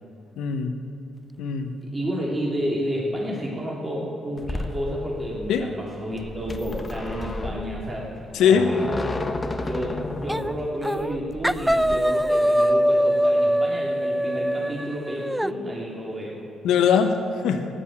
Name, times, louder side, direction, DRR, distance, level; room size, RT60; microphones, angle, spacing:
voice 1, 0.4-0.8 1.4-1.7 5.5-5.7 8.3-8.7 16.6-17.7, left 7 dB, 85° left, 6 dB, 1.3 m, -21 dB
voice 2, 1.8-9.0 9.6-16.4, equal, 25° right, -4 dB, 3.2 m, -31 dB
sound 1, 4.4-12.0, left 2 dB, 20° left, 1.2 m, -32 dB
sound 2, 10.3-10.5 10.8-11.2 11.4-15.5, equal, 5° right, 0.3 m, -22 dB
14.5 x 11.0 x 8.8 m, 2.7 s
cardioid pair, 90°, 0 cm